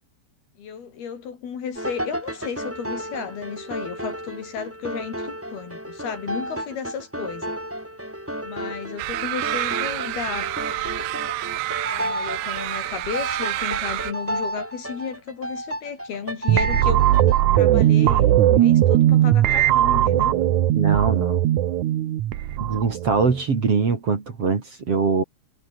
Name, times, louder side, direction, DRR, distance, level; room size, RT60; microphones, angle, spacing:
voice 1, 0.6-7.5 8.4-10.5 11.9-17.2 17.5-20.4, left 7 dB, 60° left, 5.2 m, -33 dB
sound 1, 1.8-17.4, equal, 5° right, 5.3 m, -32 dB
sound 2, 9.0-14.1, right 18 dB, 85° right, 3.1 m, -28 dB
sound 3, 16.5-23.4, right 12 dB, 70° right, 1.9 m, -18 dB
voice 2, 20.7-21.4 22.6-25.2, right 5 dB, 35° right, 3.5 m, -22 dB
omnidirectional pair, 5.0 m